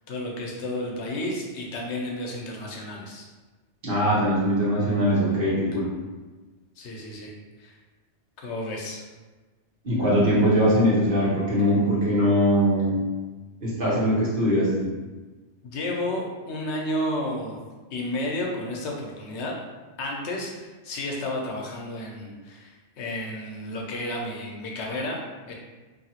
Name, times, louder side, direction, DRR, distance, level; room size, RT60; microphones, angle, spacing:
voice 1, 0.1-3.3 6.8-7.3 7.6-7.8 8.4-9.0 15.6-17.6 17.9-19.5 20.0-25.5, left 1 dB, 75° left, -1 dB, 0.9 m, -32 dB
voice 2, 3.8-5.9 9.8-13.0 13.6-14.9, equal, 50° right, -8 dB, 1.1 m, -21 dB
2.7 x 2.6 x 2.8 m, 1.3 s
omnidirectional pair, 1.2 m